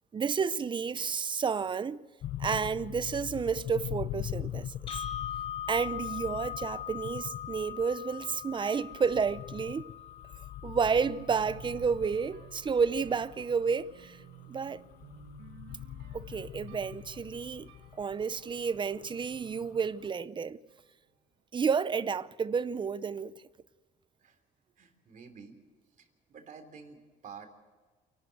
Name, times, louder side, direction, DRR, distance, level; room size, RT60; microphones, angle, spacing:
voice 1, 0.1-2.0 2.4-5.0 5.7-9.9 10.6-14.2 14.5-14.8 16.1-17.7 18.0-20.6 21.5-23.3, right 5 dB, 30° right, 0.7 m, -31 dB
sound 1, 2.2-20.1, left 12 dB, 55° left, 0.5 m, -43 dB
sound 2, 4.9-12.9, left 10 dB, 35° left, 2.2 m, -41 dB
sound 3, 11.0-20.8, right 7 dB, 85° right, 1.7 m, -54 dB
voice 2, 24.8-25.6 25.9-27.5, right 6 dB, 50° right, 3.5 m, -50 dB
28.5 x 12.5 x 7.9 m
cardioid pair, 110°, 17 cm